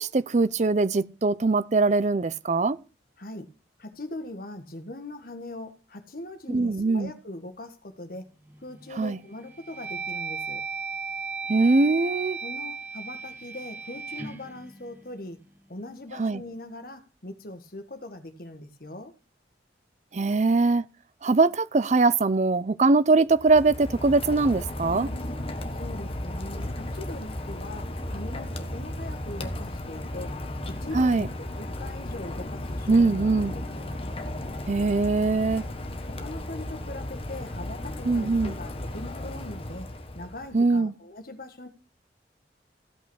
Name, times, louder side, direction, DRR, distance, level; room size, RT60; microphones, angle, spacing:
voice 1, 0.0-2.8 6.5-7.1 9.0-9.2 11.5-12.4 16.2-16.4 20.1-20.8 21.2-25.1 30.9-31.3 32.9-33.5 34.7-35.6 38.1-38.5 40.5-40.9, right 3 dB, 40° right, 0.5 m, -22 dB
voice 2, 3.2-3.5 3.8-8.3 8.6-10.6 12.4-15.4 15.7-19.1 25.7-30.4 30.7-33.8 36.1-39.9 40.1-41.7, left 2 dB, 50° left, 1.5 m, -41 dB
sound 1, 8.5-8.9 9.4-15.6, right 5 dB, 10° right, 1.3 m, -36 dB
Rain, 23.3-40.6, left 1 dB, 30° left, 1.2 m, -35 dB
15.0 x 5.8 x 6.3 m
head